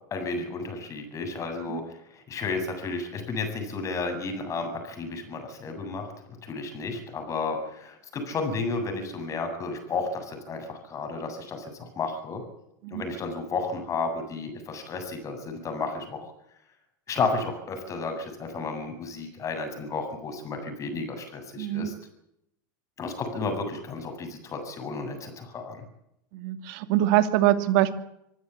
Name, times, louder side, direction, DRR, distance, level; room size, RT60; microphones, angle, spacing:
voice 1, 0.1-6.1 6.4-12.4 12.9-16.3 17.1-21.9 23.0-25.8, left 4 dB, 30° left, 6 dB, 7.9 m, -32 dB
voice 2, 21.6-21.9 26.3-27.9, right 13 dB, 60° right, 10 dB, 2.7 m, -23 dB
25.0 x 15.5 x 8.5 m, 0.77 s
supercardioid pair, 120°, 11 cm